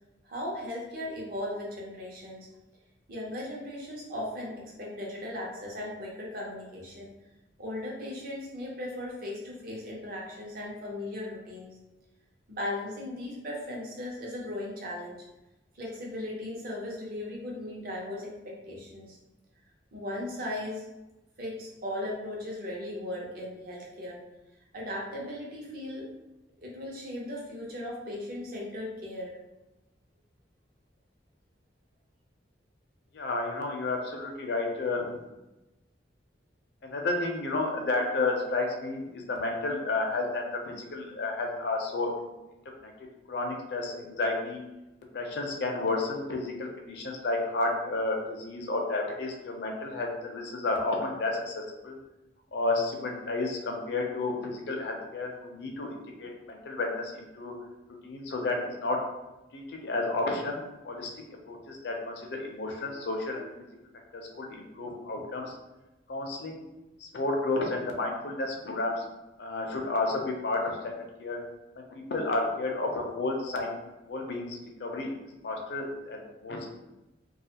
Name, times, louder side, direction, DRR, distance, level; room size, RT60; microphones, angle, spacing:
voice 1, 0.2-2.5 3.1-7.1 7.6-11.8 12.5-15.2 15.7-19.2 19.9-20.8 21.4-24.2 24.7-26.1 26.6-29.4, left 1 dB, 55° right, -3 dB, 0.7 m, -37 dB
voice 2, 33.1-35.1 36.8-42.3 42.8-42.9 43.3-44.6 45.1-52.0 52.5-57.5 58.0-59.0 59.5-60.6 60.8-61.1 61.5-63.5 64.1-65.5 66.1-66.6 67.0-68.9 69.4-71.4 71.8-73.8 74.1-75.1 75.4-76.7, left 2 dB, 60° left, 1 dB, 0.5 m, -31 dB
2.4 x 2.3 x 2.8 m, 1.0 s
head